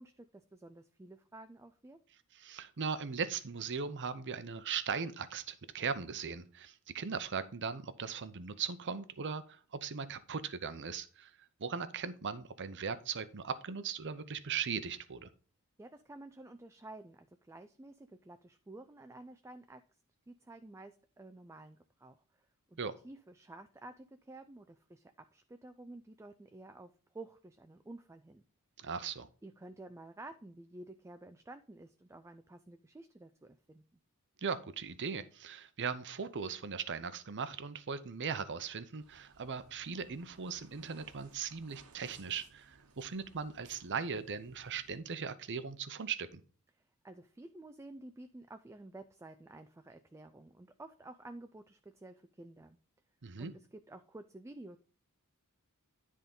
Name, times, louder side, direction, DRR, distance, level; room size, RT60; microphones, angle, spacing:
voice 1, 0.0-2.0 15.8-19.8 20.3-22.4 22.7-22.8 23.0-28.4 29.4-33.8 46.7-52.8 53.4-54.8, right 2 dB, 10° right, 0.4 m, -51 dB
voice 2, 2.3-11.3 11.6-15.3 22.8-22.9 28.8-29.3 34.4-46.4 53.2-53.5, right 6 dB, 55° right, 0.7 m, -39 dB
sound 1, 39.0-45.0, right 4 dB, 80° right, 1.1 m, -62 dB
10.0 x 3.7 x 5.3 m
head